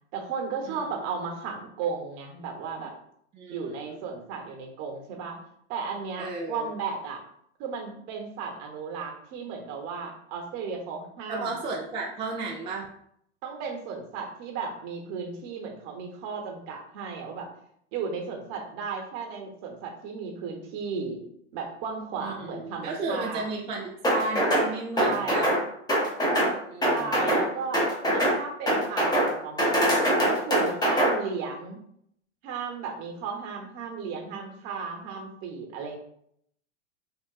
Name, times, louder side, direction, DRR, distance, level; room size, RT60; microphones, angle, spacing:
voice 1, 0.1-2.9 3.5-5.4 5.7-7.2 7.6-11.5 13.4-17.5 17.9-21.2 21.5-23.5 24.9-25.5 26.9-31.8 32.4-36.0, right 5 dB, 50° right, 2 dB, 0.9 m, -35 dB
voice 2, 0.6-1.0 3.3-4.0 6.2-6.7 11.3-12.9 22.2-25.5 26.2-27.3, right 3 dB, 15° right, -2 dB, 0.3 m, -34 dB
sound 1, 24.0-24.7 25.0-25.6 25.9-26.5 26.8-27.4 27.7-28.4 28.7-29.3 29.6-31.1, right 1 dB, 10° left, 0.8 m, -23 dB
3.7 x 2.4 x 2.3 m, 0.70 s
hypercardioid pair, 105°, 35 cm